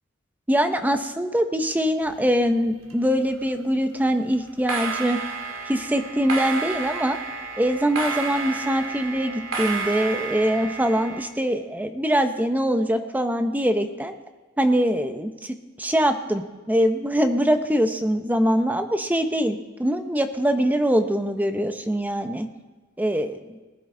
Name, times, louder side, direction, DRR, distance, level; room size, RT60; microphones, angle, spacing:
voice 1, 0.5-5.2 5.7-7.2 7.6-14.1 14.6-22.5 23.0-23.6, equal, 10° right, 7 dB, 0.7 m, -23 dB
sound 1, 2.0-2.9 3.2-3.6 4.5-11.3, right 4 dB, 75° right, 2.2 m, -31 dB
19.5 x 11.5 x 3.8 m, 1.3 s
head